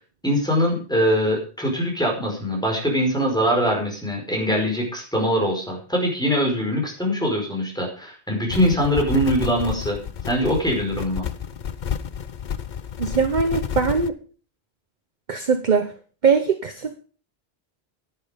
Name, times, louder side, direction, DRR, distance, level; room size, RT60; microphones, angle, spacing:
voice 1, 0.2-10.0 10.3-11.2, equal, 5° left, -1 dB, 5.0 m, -22 dB
sound 1, 8.5-14.1, left 8 dB, 50° left, 0.8 m, -30 dB
voice 2, 13.0-14.2 15.3-15.9 16.2-17.0, right 5 dB, 45° right, 8 dB, 1.0 m, -21 dB
11.0 x 10.5 x 5.2 m, 0.38 s
omnidirectional pair, 1.1 m